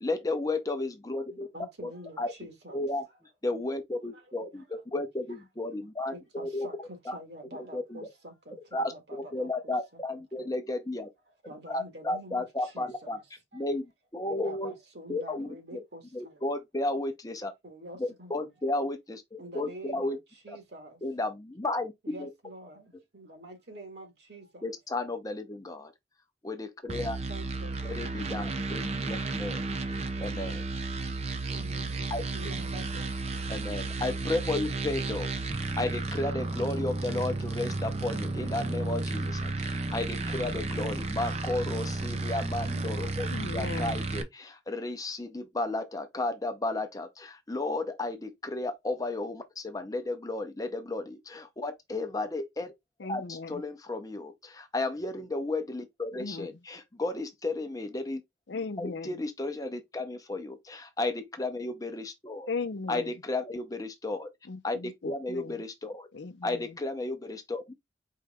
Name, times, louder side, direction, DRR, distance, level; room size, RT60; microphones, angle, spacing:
voice 1, 0.0-1.5 1.8-1.9 2.2-2.3 2.7-3.0 3.4-6.7 7.1-7.2 7.7-8.1 8.7-8.9 9.3-11.1 11.7-13.2 13.5-14.7 15.1-15.5 16.1-17.5 18.0-20.2 20.5-20.6 21.0-22.3 24.6-25.9 26.4-27.2 27.8-29.7 30.2-30.7 32.1-32.2 33.5-43.3 43.5-52.7 53.1-58.2 58.8-62.5 62.9-64.3 64.6-64.8 65.0-66.1 66.4-67.7, left 2 dB, 20° left, 0.7 m, -33 dB
voice 2, 1.3-2.9 4.1-5.1 6.1-10.5 11.4-13.2 13.5-13.7 14.2-16.5 17.6-18.7 19.4-21.0 22.0-24.7 27.3-28.1 30.1-30.3 31.3-33.5, right 1 dB, 60° right, 1.8 m, -47 dB
sound 1, 26.9-44.2, right 3 dB, 35° right, 0.6 m, -33 dB
voice 3, 43.3-43.9 53.0-53.6 56.1-56.6 58.5-59.2 62.5-63.1 64.4-65.6 66.1-66.8, left 4 dB, 70° left, 0.6 m, -38 dB
4.6 x 3.2 x 3.5 m
head